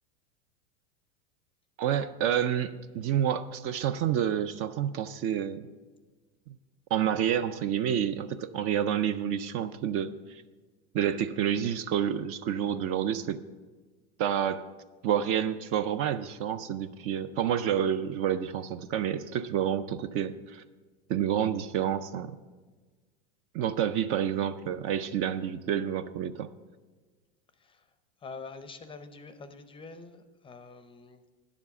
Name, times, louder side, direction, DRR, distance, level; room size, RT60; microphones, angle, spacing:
voice 1, 1.8-5.7 6.5-6.6 6.9-10.4 10.9-13.4 14.2-14.6 15.0-20.6 21.1-22.4 23.5-26.5, right 9 dB, 40° right, 11 dB, 0.5 m, -29 dB
voice 2, 28.2-31.2, left 4 dB, 15° left, 10 dB, 0.6 m, -46 dB
9.7 x 7.3 x 6.8 m, 1.4 s
supercardioid pair, 130°, 34 cm